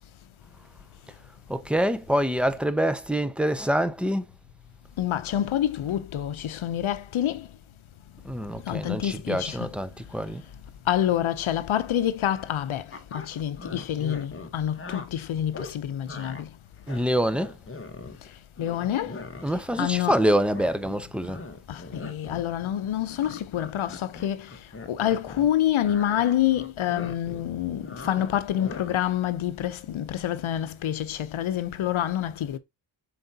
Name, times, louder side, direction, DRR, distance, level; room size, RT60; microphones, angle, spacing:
voice 1, 1.5-4.3 8.2-10.4 16.9-17.5 19.4-21.4, equal, ahead, 0.4 m, -26 dB
voice 2, 5.0-7.5 8.7-9.7 10.9-12.8 13.1-16.5 18.6-19.2 19.8-20.2 21.7-24.5 24.9-32.6, left 11 dB, 75° left, 0.7 m, -27 dB
sound 1, 12.9-15.1 15.5-15.7 16.1-16.4 16.8-18.3 18.6-20.2 20.5-25.5 25.8-29.1, left 3 dB, 25° left, 1.0 m, -40 dB
7.6 x 4.7 x 2.7 m
wide cardioid pair, 160°, 48 cm